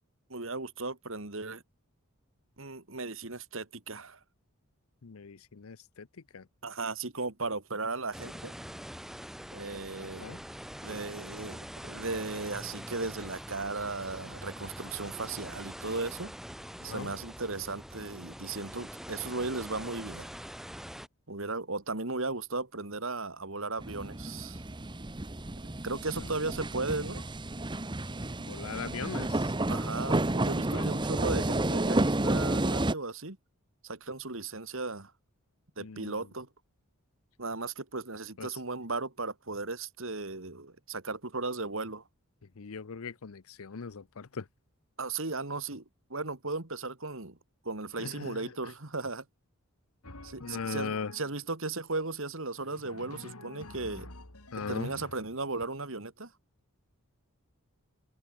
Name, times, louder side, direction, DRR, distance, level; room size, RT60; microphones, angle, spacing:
voice 1, 0.3-1.6 2.6-4.2 6.6-8.5 9.5-10.4 10.8-16.3 16.8-20.3 21.3-24.6 25.8-27.2 29.7-33.4 33.8-35.1 35.8-36.5 37.4-42.0 45.0-45.8 46.1-47.4 47.6-49.2 50.2-54.1 54.7-56.3, right 3 dB, 60° right, 2.4 m, -36 dB
voice 2, 5.0-6.1 6.3-6.5 10.0-10.4 16.8-17.1 26.2-26.3 28.5-29.5 30.7-30.9 35.8-36.2 38.4-38.6 42.6-44.5 48.0-48.5 50.4-51.1 54.5-54.9, left 5 dB, 75° left, 0.7 m, -39 dB
sound 1, 8.1-21.1, equal, ahead, 1.7 m, -44 dB
sound 2, 23.8-32.9, right 2 dB, 20° right, 0.9 m, -31 dB
Drum, 50.0-51.5 52.6-55.7, left 2 dB, 90° left, 4.9 m, -48 dB
head